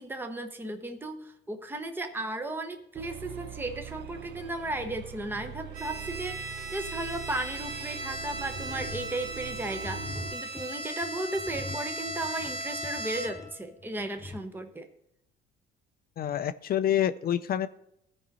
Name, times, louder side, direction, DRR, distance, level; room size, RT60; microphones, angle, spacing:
voice 1, 0.0-14.9, right 2 dB, 10° right, 6 dB, 0.9 m, -35 dB
sound 1, 3.0-10.4, right 10 dB, 60° right, 0.6 m, -43 dB
Bowed string instrument, 5.7-13.6, right 2 dB, 80° right, 1.7 m, -37 dB
sound 2, 8.5-14.4, left 2 dB, 15° left, 1.0 m, -43 dB
voice 2, 16.2-17.7, left 10 dB, 50° left, 13 dB, 0.5 m, -27 dB
13.5 x 5.2 x 4.1 m, 0.78 s
supercardioid pair, 85°, 20 cm